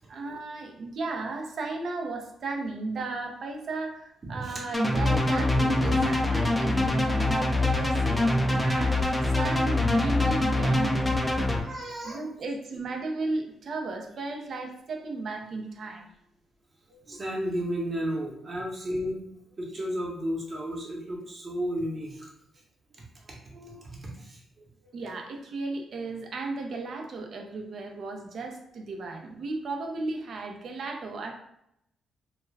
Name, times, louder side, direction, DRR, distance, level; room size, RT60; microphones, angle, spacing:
voice 1, 0.1-11.1 12.0-16.1 24.9-31.3, right 3 dB, 60° right, 3 dB, 0.5 m, -35 dB
voice 2, 4.2-4.5 11.6-12.2 16.9-19.2 19.6-22.3 23.4-24.7, equal, 40° right, -2 dB, 0.9 m, -33 dB
sound 1, 4.7-11.6, left 2 dB, 10° left, 0.3 m, -24 dB
2.2 x 2.2 x 3.2 m, 0.79 s
cardioid pair, 90°, 0 cm